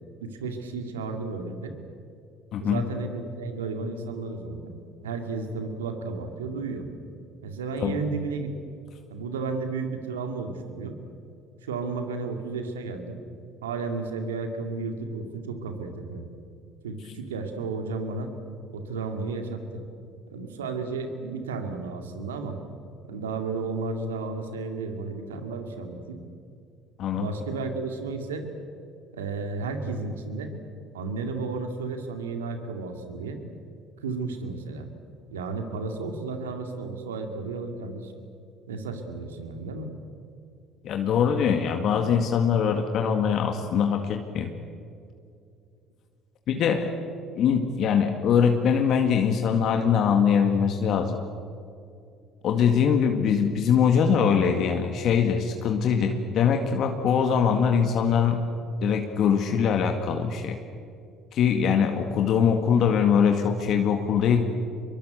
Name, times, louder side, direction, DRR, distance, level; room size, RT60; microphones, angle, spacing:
voice 1, 0.2-1.7 2.6-4.7 5.0-6.9 7.4-8.7 9.1-11.0 11.6-13.2 13.6-16.3 16.8-18.3 18.7-19.8 20.3-22.6 23.0-26.2 27.1-28.4 29.1-30.5 30.9-33.4 34.0-34.9 35.3-38.1 38.7-39.9, right 4 dB, 90° right, 6 dB, 2.4 m, -33 dB
voice 2, 2.5-2.8 7.8-8.0 27.0-27.3 40.8-44.5 46.5-46.9 47.4-51.2 52.4-58.4 58.8-60.6 61.3-64.4, left 7 dB, 60° left, 5 dB, 2.0 m, -22 dB
24.5 x 22.5 x 8.0 m, 2.5 s
hypercardioid pair, 65°, 0 cm